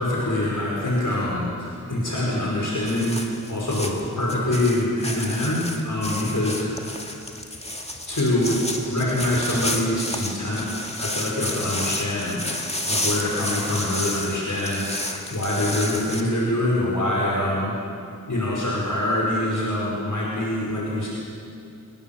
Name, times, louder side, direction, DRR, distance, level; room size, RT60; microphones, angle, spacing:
voice 1, 0.0-7.0 8.1-10.7 11.0-12.6 12.9-17.8 18.3-21.1, left 1 dB, 60° left, -5 dB, 5.4 m, -25 dB
sound 1, 2.8-16.2, left 1 dB, 20° left, 2.2 m, -31 dB
25.0 x 20.0 x 7.4 m, 2.5 s
wide cardioid pair, 70°, 34 cm